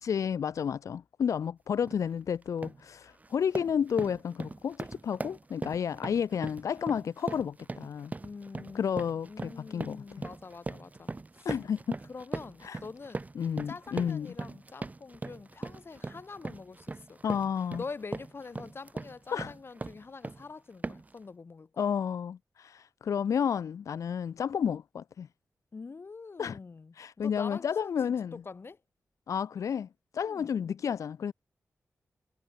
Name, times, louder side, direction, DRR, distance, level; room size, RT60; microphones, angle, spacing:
voice 1, 0.0-8.1 8.7-10.0 11.4-12.0 12.6-12.8 13.4-14.3 17.2-17.8 19.3-19.5 21.8-25.3 26.4-26.6 27.0-28.4 29.3-29.9 30.1-31.3, left 7 dB, 85° left, 0.6 m, -31 dB
sound 1, 1.8-2.0 2.4-2.8 3.2-20.5 20.8-21.2, right 3 dB, 30° right, 1.2 m, -40 dB
voice 2, 8.2-11.1 11.4-11.5 12.1-13.2 13.6-17.2 17.8-21.8 25.7-28.8 30.3-30.5, left 4 dB, 50° left, 6.4 m, -45 dB
wide cardioid pair, 95°, 5 cm